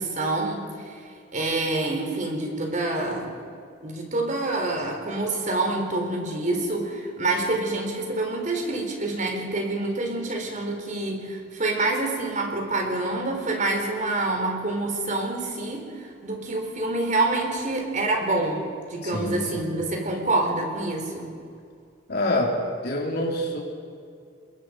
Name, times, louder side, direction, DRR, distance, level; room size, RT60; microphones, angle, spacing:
voice 1, 0.0-3.3 3.8-18.6 18.9-21.3, right 2 dB, 45° right, 2 dB, 4.2 m, -27 dB
voice 2, 19.0-19.8 22.1-22.6 22.8-23.6, left 1 dB, 60° left, -2 dB, 4.3 m, -26 dB
27.0 x 22.0 x 5.2 m, 2.3 s
head